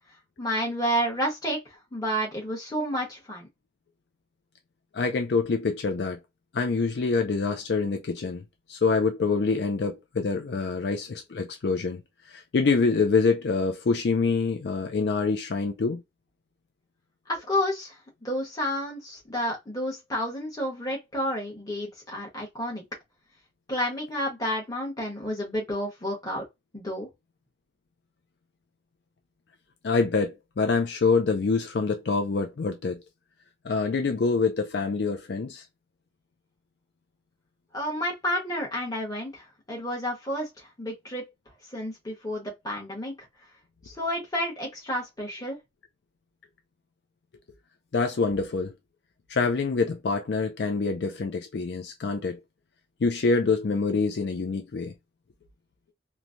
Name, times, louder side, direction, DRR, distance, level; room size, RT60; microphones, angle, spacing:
voice 1, 0.4-1.6 1.9-3.5 17.3-17.9 18.2-22.8 23.7-26.4 26.7-27.1 37.7-40.5 40.8-41.2 41.7-43.1 43.8-45.6, equal, 20° left, 1.2 m, -30 dB
voice 2, 4.9-6.2 6.5-8.4 8.7-12.0 12.3-16.0 29.8-33.0 33.6-35.6 47.9-48.7 49.3-52.4 53.0-54.9, left 4 dB, 60° left, 0.4 m, -26 dB
3.1 x 2.2 x 2.5 m
head